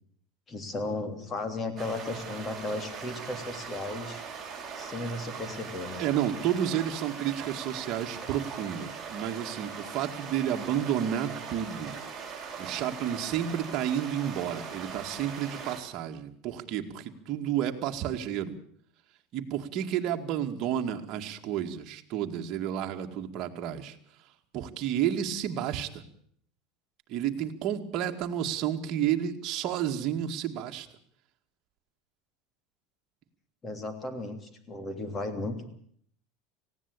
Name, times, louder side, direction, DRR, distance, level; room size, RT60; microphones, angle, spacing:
voice 1, 0.5-4.2 4.7-6.0 33.6-35.7, left 2 dB, 20° left, 8 dB, 3.1 m, -35 dB
sound 1, 1.8-15.8, right 6 dB, 20° right, 6.8 m, -40 dB
voice 2, 6.0-11.9 12.6-18.6 19.3-24.0 24.5-26.0 27.1-30.9, right 10 dB, 45° right, 4 dB, 2.2 m, -31 dB
19.5 x 16.0 x 8.6 m, 0.62 s
supercardioid pair, 140°, 0 cm